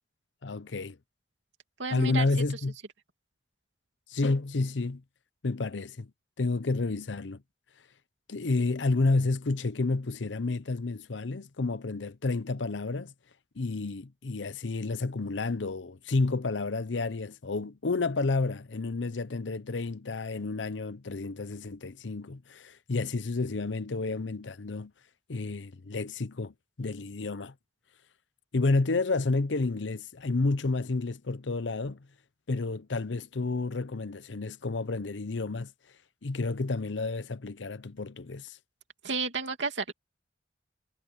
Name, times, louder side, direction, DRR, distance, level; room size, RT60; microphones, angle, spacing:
voice 1, 0.4-1.0 1.9-2.7 4.1-5.0 5.4-6.1 6.4-7.4 8.3-13.1 13.6-24.9 25.3-27.5 28.5-32.0 32.5-35.7 36.2-38.6, left 3 dB, 90° left, 0.8 m, -30 dB
voice 2, 1.8-2.3 39.0-39.9, right 4 dB, 90° right, 2.8 m, -31 dB
head